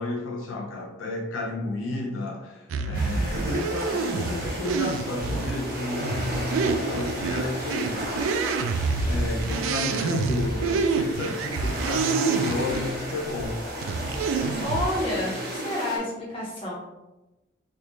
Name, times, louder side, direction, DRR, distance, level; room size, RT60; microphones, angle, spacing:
voice 1, 0.0-8.4 9.0-13.6 15.3-15.4, left 2 dB, 85° left, 1 dB, 0.5 m, -32 dB
sound 1, 2.7-12.9 13.4-14.9, right 4 dB, 90° right, 0.3 m, -27 dB
sound 2, 2.9-16.0, right 1 dB, 50° right, 0.9 m, -34 dB
voice 2, 14.6-16.7, left 1 dB, 30° left, -6 dB, 1.1 m, -29 dB
3.3 x 2.6 x 3.0 m, 1.0 s
head